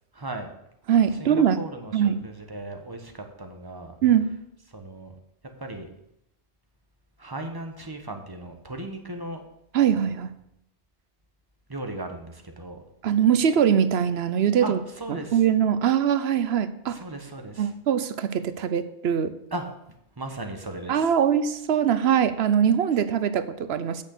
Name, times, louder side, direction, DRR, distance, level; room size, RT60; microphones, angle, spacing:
voice 1, 0.1-0.5 1.2-4.0 4.7-5.2 5.6-5.9 7.2-9.4 11.7-12.8 14.6-15.4 16.9-17.7 19.5-19.7 20.2-21.1, right 1 dB, 20° right, 4 dB, 1.2 m, -37 dB
voice 2, 0.9-1.6 1.9-2.2 4.0-4.3 9.7-10.3 13.0-14.8 15.1-17.0 17.6-19.3 20.9-24.0, right 8 dB, 75° right, 13 dB, 0.9 m, -22 dB
8.7 x 6.4 x 6.6 m, 0.81 s
omnidirectional pair, 1.1 m